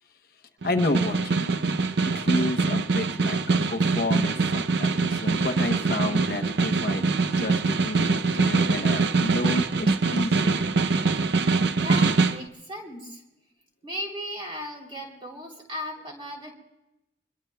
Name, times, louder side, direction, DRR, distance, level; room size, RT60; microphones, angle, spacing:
voice 1, 0.6-7.1 7.4-10.6, left 2 dB, 55° left, 5 dB, 0.8 m, -31 dB
Snare drum, 0.6-12.5, right 4 dB, 65° right, 0.6 m, -24 dB
voice 2, 11.7-13.2 13.8-16.5, equal, 30° right, 0 dB, 3.3 m, -36 dB
26.0 x 21.5 x 2.3 m, 0.89 s
head